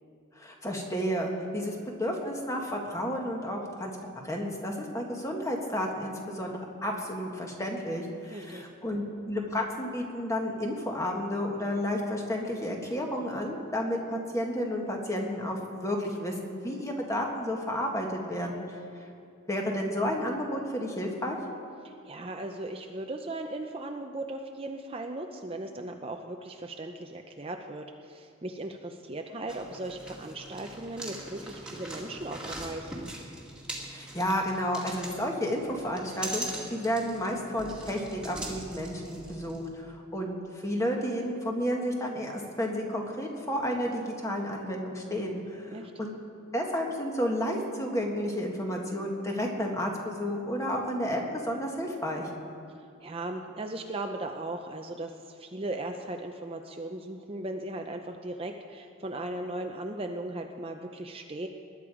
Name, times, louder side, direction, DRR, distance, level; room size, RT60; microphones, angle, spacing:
voice 1, 0.3-3.9 4.2-18.8 19.5-21.4 33.9-36.5 36.7-42.3 42.6-46.1 46.5-52.3, equal, 15° left, 1 dB, 1.6 m, -31 dB
voice 2, 8.3-8.6 21.8-33.1 45.7-45.9 52.7-61.5, right 2 dB, 30° right, 4 dB, 0.6 m, -37 dB
sound 1, 29.5-39.7, right 1 dB, 5° right, 2.1 m, -41 dB
20.0 x 10.5 x 5.0 m, 2.5 s
head